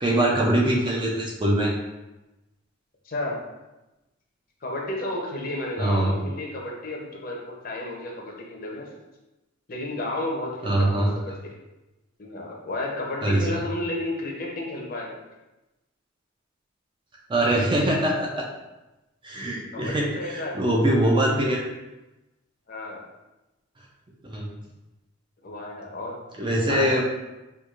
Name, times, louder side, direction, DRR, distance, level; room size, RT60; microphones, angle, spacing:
voice 1, 0.0-1.7 5.8-6.1 10.6-11.1 13.2-13.6 17.3-18.5 19.2-21.6 24.2-24.5 26.4-27.0, right 1 dB, 25° right, -2 dB, 0.4 m, -23 dB
voice 2, 3.0-3.4 4.6-8.9 9.7-11.3 12.2-15.2 19.7-20.6 21.0-21.2 22.7-23.0 25.4-26.1 26.7-27.0, left 1 dB, 45° left, -2 dB, 0.6 m, -32 dB
4.5 x 2.4 x 2.4 m, 1.0 s
head